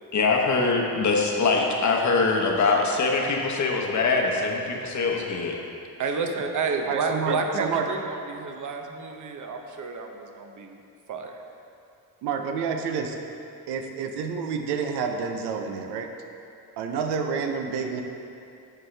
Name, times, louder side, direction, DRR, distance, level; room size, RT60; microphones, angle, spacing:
voice 1, 0.1-5.6, left 4 dB, 45° left, 0 dB, 1.0 m, -23 dB
voice 2, 6.0-10.8 11.1-11.3, right 4 dB, 50° right, 4 dB, 0.8 m, -30 dB
voice 3, 6.8-7.9 12.2-13.2 13.7-16.1 16.8-18.0, right 6 dB, 85° right, 4 dB, 0.7 m, -29 dB
10.0 x 4.4 x 3.3 m, 2.6 s
cardioid pair, 85°, 39 cm